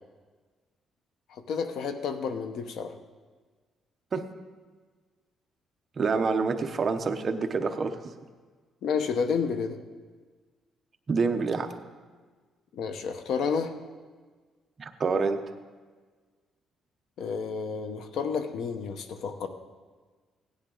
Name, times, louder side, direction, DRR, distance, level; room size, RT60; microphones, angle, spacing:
voice 1, 1.3-2.9 8.8-9.8 12.7-13.7 17.2-19.5, left 6 dB, 70° left, 8 dB, 0.9 m, -30 dB
voice 2, 6.0-8.0 11.1-11.7 14.8-15.4, right 4 dB, 35° right, 6 dB, 0.8 m, -27 dB
16.5 x 10.5 x 3.9 m, 1.4 s
cardioid pair, 145°, 0 cm